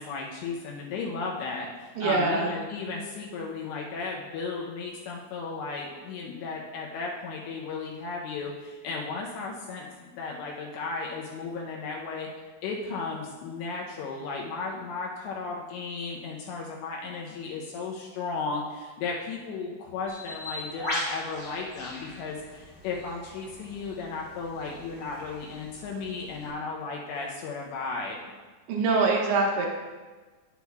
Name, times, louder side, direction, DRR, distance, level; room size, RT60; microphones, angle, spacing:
voice 1, 0.0-12.3 12.6-28.2, left 4 dB, 80° left, -2 dB, 2.7 m, -35 dB
voice 2, 2.0-2.5 28.7-29.7, right 3 dB, 80° right, 0 dB, 2.9 m, -24 dB
Bird, 20.1-26.5, left 1 dB, 60° left, 0.6 m, -40 dB
9.5 x 8.1 x 2.3 m, 1.3 s
omnidirectional pair, 5.6 m